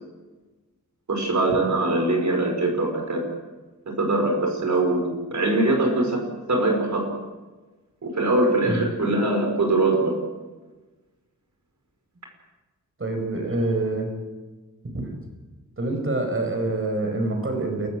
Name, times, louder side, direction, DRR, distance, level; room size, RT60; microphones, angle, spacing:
voice 1, 1.1-3.2 3.9-6.2 6.5-7.1 8.0-10.1, right 2 dB, 60° right, 3 dB, 5.2 m, -22 dB
voice 2, 13.0-14.1 14.8-15.2 15.8-17.9, right 2 dB, 40° right, 4 dB, 5.8 m, -26 dB
29.0 x 15.5 x 7.8 m, 1.2 s
wide cardioid pair, 105°, 32 cm